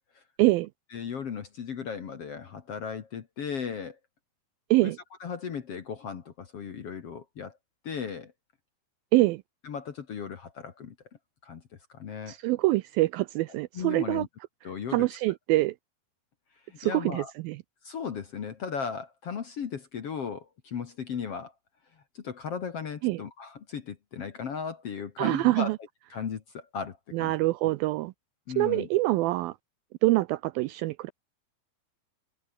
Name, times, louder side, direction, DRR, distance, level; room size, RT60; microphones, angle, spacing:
voice 1, 0.4-0.7 4.7-5.0 9.1-9.4 12.3-14.3 14.9-15.8 16.8-17.6 23.0-23.2 25.2-25.8 27.1-28.1 28.6-29.6 30.0-31.1, right 19 dB, 85° right, 2.1 m, -25 dB
voice 2, 0.9-4.0 4.8-4.9 5.2-7.6 7.8-8.3 9.6-10.9 11.4-11.6 11.9-12.4 13.7-14.3 14.6-15.1 16.7-17.3 17.8-21.5 22.1-25.7 26.1-27.3 27.6-27.7 28.5-28.9, left 6 dB, 50° left, 2.0 m, -36 dB
omnidirectional pair, 4.7 m